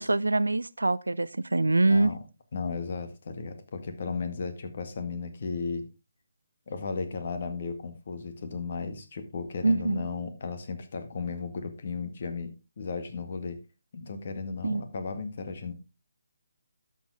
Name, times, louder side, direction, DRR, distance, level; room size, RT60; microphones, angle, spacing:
voice 1, 0.0-2.1 9.6-10.1 14.6-14.8, right 2 dB, 75° right, 0.5 m, -24 dB
voice 2, 1.9-2.2 2.5-5.8 6.7-12.5 12.8-13.6 13.9-15.7, left 4 dB, 45° left, 1.9 m, -35 dB
12.0 x 7.1 x 3.6 m
figure-of-eight pair, 145°, 0 cm